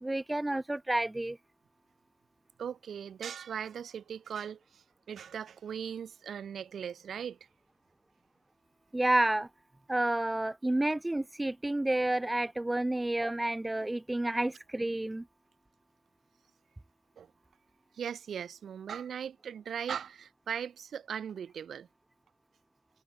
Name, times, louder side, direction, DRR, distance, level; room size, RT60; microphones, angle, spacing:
voice 1, 0.0-1.4 8.9-9.5 9.9-15.2, right 1 dB, 15° right, 1.2 m, -30 dB
voice 2, 2.6-7.4 17.2-17.3 17.9-21.9, right 8 dB, 85° right, 5.3 m, -39 dB
wide cardioid pair, 125°, 0 cm